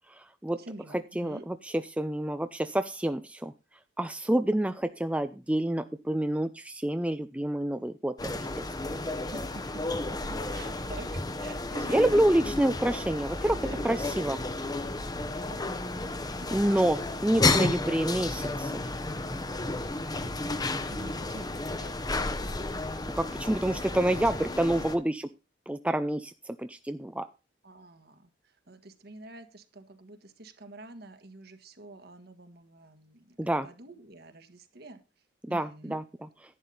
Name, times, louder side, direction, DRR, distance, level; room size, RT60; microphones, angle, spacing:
voice 1, 0.6-1.4 9.3-12.6 13.4-14.3 15.5-15.8 16.4-17.0 17.6-17.7 20.8-21.9 23.9-24.3 27.6-35.0 35.5-36.0, right 2 dB, 55° right, 8 dB, 1.6 m, -47 dB
voice 2, 1.2-1.6 2.0-3.5 4.0-8.7 11.9-13.6 13.8-14.4 16.5-18.8 23.2-25.3 25.7-27.3 33.4-33.7 35.4-36.0, right 1 dB, 5° right, 10 dB, 0.4 m, -28 dB
sound 1, 8.2-25.0, left 2 dB, 20° left, 0.9 m, -32 dB
11.0 x 9.4 x 3.9 m, 0.29 s
head